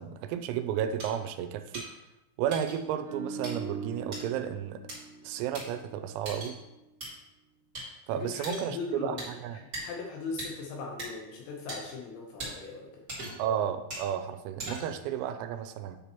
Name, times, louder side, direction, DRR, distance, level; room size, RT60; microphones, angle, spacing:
voice 1, 0.0-1.8 2.4-4.8 5.2-6.6 8.1-9.6 13.4-16.0, right 9 dB, 85° right, 10 dB, 3.3 m, -33 dB
sound 1, 1.0-1.1 1.7-1.9 2.5-2.8 3.4-3.5 4.1-4.2 4.9-5.0 5.5-5.6 6.3-6.5 7.0-7.1 7.7-7.9 8.4-8.7 9.2-9.3 9.7-9.8 10.4-10.5 11.0-11.1 11.7-11.8 12.4-12.5 13.1-13.5 13.9-14.1 14.6-15.0, right 1 dB, 25° right, 2.4 m, -38 dB
sound 2, 3.0-6.3 6.6-6.8, right 4 dB, 60° right, 2.6 m, -42 dB
voice 2, 8.1-13.1, left 4 dB, 75° left, 0 dB, 2.8 m, -39 dB
9.5 x 6.9 x 3.0 m, 0.97 s
omnidirectional pair, 6.0 m